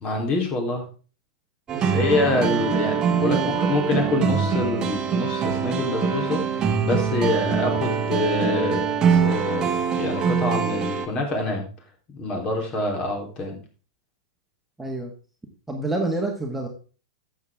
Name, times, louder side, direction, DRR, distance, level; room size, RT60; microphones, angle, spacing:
voice 1, 0.0-0.8 1.8-6.4 6.8-11.7 12.1-13.6, left 2 dB, 35° left, 2 dB, 3.6 m, -26 dB
voice 2, 1.7-2.1 3.2-3.6 14.8-15.1 15.7-16.7, right 2 dB, 5° right, 0 dB, 1.8 m, -28 dB
sound 1, 1.7-11.1, right 7 dB, 25° right, 1.3 m, -23 dB
Organ, 2.0-11.1, equal, 75° left, 3.6 m, -38 dB
12.0 x 7.6 x 3.6 m, 0.37 s
hypercardioid pair, 100°, 3 cm